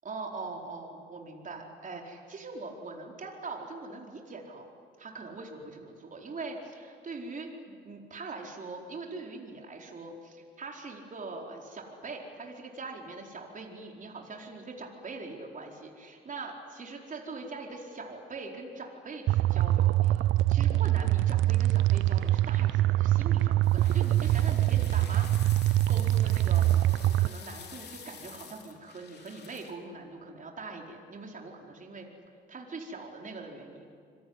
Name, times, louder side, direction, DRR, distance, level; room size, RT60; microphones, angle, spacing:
voice 1, 0.0-4.6 5.0-25.3 25.5-26.7 27.2-32.1 32.5-33.6, right 3 dB, 40° right, 1 dB, 4.6 m, -42 dB
sound 1, 19.3-27.3, right 14 dB, 80° right, 0.6 m, -24 dB
sound 2, 23.6-29.7, left 6 dB, 55° left, 3.8 m, -49 dB
27.0 x 22.5 x 9.7 m, 2.3 s
cardioid pair, 90°, 20 cm